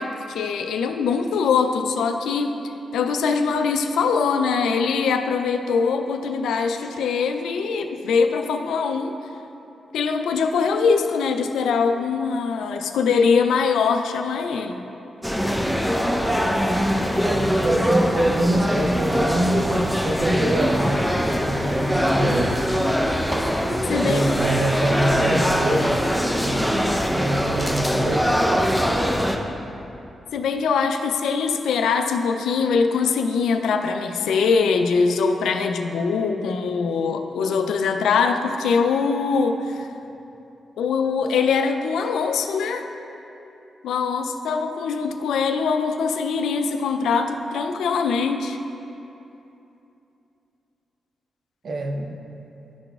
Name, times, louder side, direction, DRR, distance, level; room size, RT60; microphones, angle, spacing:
voice 1, 0.0-2.5 2.9-9.1 9.9-14.9 23.9-24.2 30.3-39.9 40.8-42.8 43.8-48.6, left 5 dB, 85° left, 6 dB, 0.3 m, -22 dB
sound 1, 15.2-29.4, equal, 5° right, 0.6 m, -22 dB
voice 2, 17.2-21.0 21.5-22.7 24.0-26.0 26.4-26.6 27.0-28.3 51.6-52.2, right 1 dB, 65° right, 4 dB, 0.5 m, -25 dB
11.5 x 3.9 x 2.3 m, 2.9 s
supercardioid pair, 45°, 0 cm